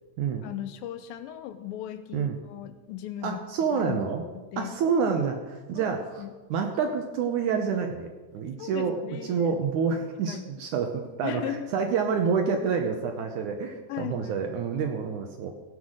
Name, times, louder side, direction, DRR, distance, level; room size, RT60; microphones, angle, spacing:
voice 1, 0.4-3.4 3.7-4.1 4.5-4.7 5.8-6.3 8.6-9.5 10.3-10.5 11.2-11.7 13.9-14.5, left 11 dB, 80° left, 9 dB, 2.3 m, -37 dB
voice 2, 3.2-4.2 4.6-6.2 6.5-15.5, right 6 dB, 70° right, 4 dB, 2.0 m, -28 dB
17.0 x 5.7 x 6.4 m, 1.2 s
omnidirectional pair, 4.3 m